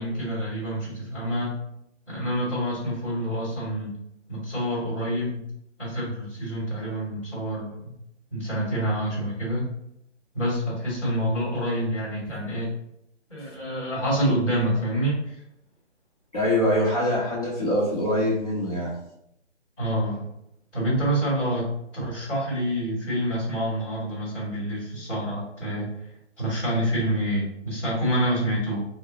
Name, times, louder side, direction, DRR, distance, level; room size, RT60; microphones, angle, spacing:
voice 1, 0.0-1.6 2.1-3.9 4.3-5.4 5.8-7.9 8.3-9.7 10.3-12.7 13.3-15.4 19.8-20.3 20.7-25.9 26.4-28.8, right 1 dB, 5° left, -16 dB, 0.9 m, -27 dB
voice 2, 16.3-19.0, left 1 dB, 30° left, -7 dB, 0.9 m, -24 dB
3.4 x 2.1 x 3.9 m, 0.79 s
figure-of-eight pair, 150°, 36 cm